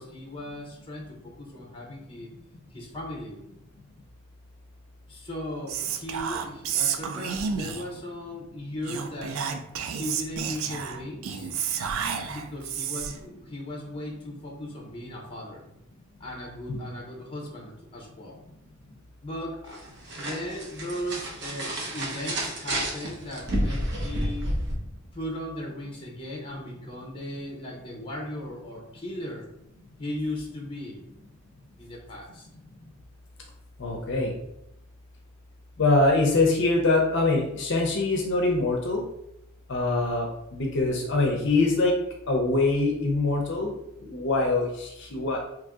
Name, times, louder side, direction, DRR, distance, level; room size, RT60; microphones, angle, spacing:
voice 1, 0.0-2.3 2.7-3.4 5.1-9.4 9.9-11.5 12.3-15.6 16.2-18.4 19.2-19.8 20.1-24.5 25.1-29.5 30.0-31.1 31.8-32.5, left 1 dB, 25° left, -1 dB, 0.7 m, -37 dB
Whispering, 5.7-8.0 8.8-13.3, right 7 dB, 70° right, 0.3 m, -31 dB
sound 1, 19.7-24.7, right 1 dB, 55° right, 0.8 m, -30 dB
voice 2, 33.8-34.3 35.8-39.0 39.7-40.3 40.5-42.0 42.3-43.7 44.0-45.4, left 2 dB, 55° left, 0 dB, 0.6 m, -24 dB
2.9 x 2.6 x 3.5 m, 0.84 s
head